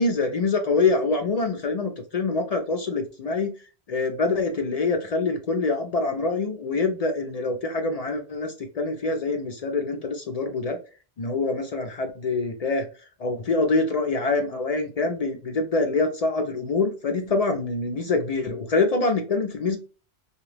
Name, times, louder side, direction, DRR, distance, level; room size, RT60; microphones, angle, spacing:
voice 1, 0.0-3.5 3.9-10.8 11.2-12.9 13.2-19.8, left 3 dB, 55° left, 4 dB, 0.4 m, -25 dB
2.8 x 2.4 x 3.2 m, 0.35 s
omnidirectional pair, 1.1 m